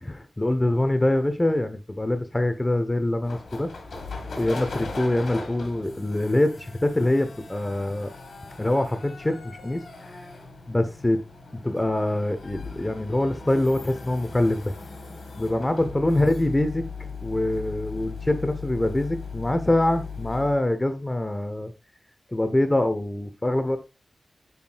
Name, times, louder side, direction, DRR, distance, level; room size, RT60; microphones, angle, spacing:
voice 1, 0.0-3.7 4.4-8.1 8.6-9.8 10.7-11.2 11.6-14.7 15.4-16.8 17.2-21.7 22.3-23.8, left 1 dB, 20° left, 9 dB, 1.0 m, -24 dB
sound 1, 3.2-20.6, left 4 dB, 80° left, 1.7 m, -39 dB
7.0 x 6.2 x 2.4 m, 0.29 s
cardioid pair, 55°, 0 cm